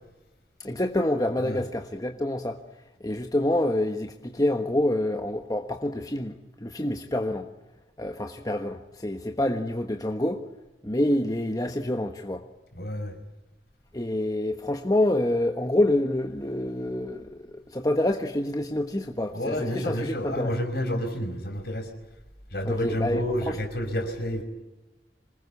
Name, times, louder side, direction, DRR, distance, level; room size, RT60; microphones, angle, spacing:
voice 1, 0.6-2.6 3.0-7.5 8.0-10.4 10.8-12.4 13.9-20.5 22.6-23.6, left 1 dB, 20° left, 5 dB, 1.3 m, -27 dB
voice 2, 12.7-13.1 19.3-21.9 22.5-24.4, equal, 60° left, 6 dB, 5.1 m, -29 dB
26.5 x 20.5 x 8.4 m, 1.0 s
head